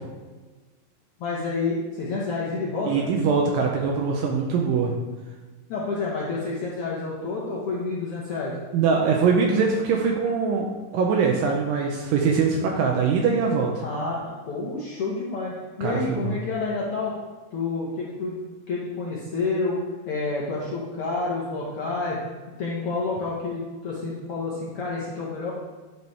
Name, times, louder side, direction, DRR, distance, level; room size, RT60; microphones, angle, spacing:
voice 1, 1.2-3.1 5.7-8.5 13.8-17.1 17.5-18.4 18.7-19.8 20.1-22.2 22.6-25.5, left 3 dB, 80° left, -5 dB, 1.3 m, -29 dB
voice 2, 2.9-4.9 8.7-10.7 10.9-13.7 15.8-16.2, right 5 dB, 80° right, 0 dB, 2.3 m, -22 dB
10.5 x 4.7 x 3.2 m, 1.3 s
omnidirectional pair, 4.2 m